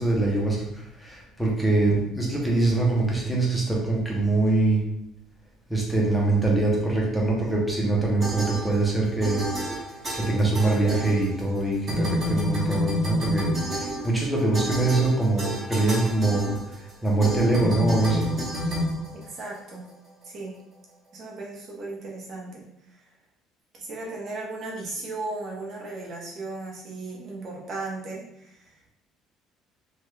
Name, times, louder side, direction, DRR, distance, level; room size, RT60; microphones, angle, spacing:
voice 1, 0.0-4.8 5.7-9.5 10.1-16.6 17.0-18.3, right 2 dB, ahead, -3 dB, 0.6 m, -23 dB
voice 2, 2.3-2.6 19.2-19.9 20.2-20.5 21.1-23.0 23.7-28.8, right 2 dB, 40° right, -3 dB, 0.8 m, -36 dB
sound 1, 8.2-9.0 9.2-11.6 11.9-19.7, equal, 20° right, 0.9 m, -29 dB
2.9 x 2.2 x 3.2 m, 0.80 s
cardioid pair, 165°, 0 cm